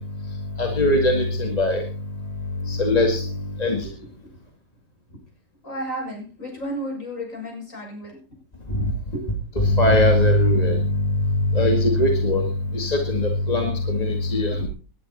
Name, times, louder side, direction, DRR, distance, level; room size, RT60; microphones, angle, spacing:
voice 1, 0.6-1.8 2.7-3.2 3.6-3.9 8.7-8.9 9.6-14.7, left 1 dB, 20° left, 3 dB, 2.2 m, -20 dB
voice 2, 5.6-8.2 8.7-8.8 9.1-9.3 14.6-14.7, equal, 45° left, 0 dB, 7.3 m, -32 dB
19.5 x 11.0 x 4.2 m, 0.36 s
omnidirectional pair, 2.0 m